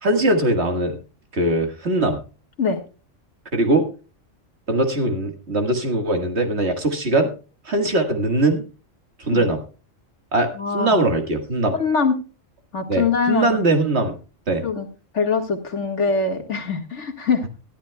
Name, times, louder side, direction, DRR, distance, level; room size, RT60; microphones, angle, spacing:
voice 1, 0.0-1.0 1.3-2.2 3.5-3.9 4.7-7.3 7.7-8.6 9.2-9.6 10.3-10.5 10.7-11.7 12.9-14.2 14.5-14.6, right 2 dB, 55° right, 5 dB, 1.9 m, -21 dB
voice 2, 10.5-10.9 11.7-12.2 12.7-13.6 14.6-14.9 15.1-17.5, left 5 dB, 65° left, 5 dB, 2.0 m, -23 dB
20.5 x 11.5 x 2.2 m, 0.34 s
omnidirectional pair, 1.3 m